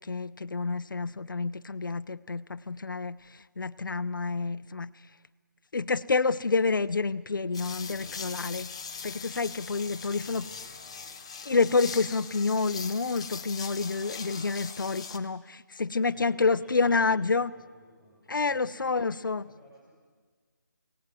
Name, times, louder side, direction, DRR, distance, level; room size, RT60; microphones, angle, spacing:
voice 1, 0.0-4.9 5.7-8.7 9.0-10.5 11.4-17.5 18.3-19.5, left 4 dB, 85° left, 12 dB, 0.7 m, -28 dB
sound 1, 7.5-15.2, left 5 dB, 15° left, 0.7 m, -41 dB
voice 2, 9.9-11.1 15.9-19.8, equal, 5° right, -5 dB, 6.1 m, -55 dB
23.0 x 18.0 x 9.1 m, 1.5 s
hypercardioid pair, 175°, 11 cm